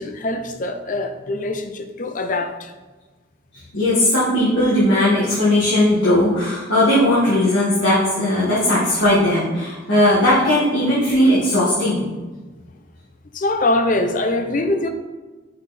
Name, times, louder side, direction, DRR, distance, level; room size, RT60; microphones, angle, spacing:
voice 1, 0.0-2.7 13.3-14.9, left 2 dB, 45° left, 7 dB, 0.6 m, -23 dB
voice 2, 3.7-12.1, left 1 dB, 75° left, -10 dB, 1.9 m, -17 dB
5.6 x 5.5 x 4.2 m, 1.3 s
head